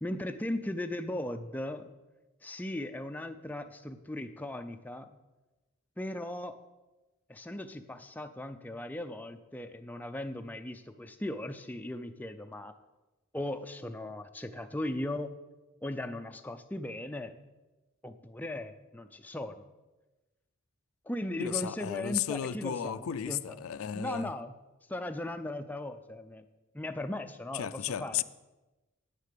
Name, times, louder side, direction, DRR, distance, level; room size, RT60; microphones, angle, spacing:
voice 1, 0.0-1.9 2.4-5.2 6.0-6.6 7.3-12.7 13.3-15.4 15.8-17.4 18.0-19.6 21.0-23.6 23.9-24.5 24.9-26.4 26.7-28.2, left 1 dB, 10° left, 0.4 m, -38 dB
voice 2, 21.4-24.3 27.5-28.2, left 9 dB, 80° left, 0.4 m, -34 dB
9.1 x 6.5 x 6.7 m
head